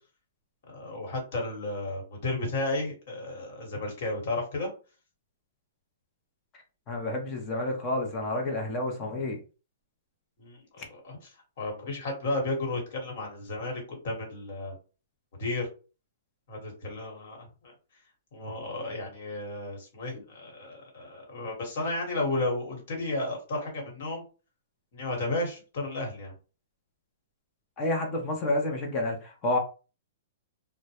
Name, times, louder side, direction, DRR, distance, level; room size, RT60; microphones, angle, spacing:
voice 1, 0.7-4.7 10.4-11.2 11.6-14.7 15.4-15.7 16.5-17.7 18.3-24.2 24.9-26.3, left 2 dB, 55° left, 1 dB, 1.2 m, -33 dB
voice 2, 6.9-9.4 10.8-10.9 27.8-29.6, left 1 dB, 25° left, 1 dB, 0.6 m, -29 dB
2.1 x 2.0 x 2.8 m, 0.34 s
hypercardioid pair, 155°, 0 cm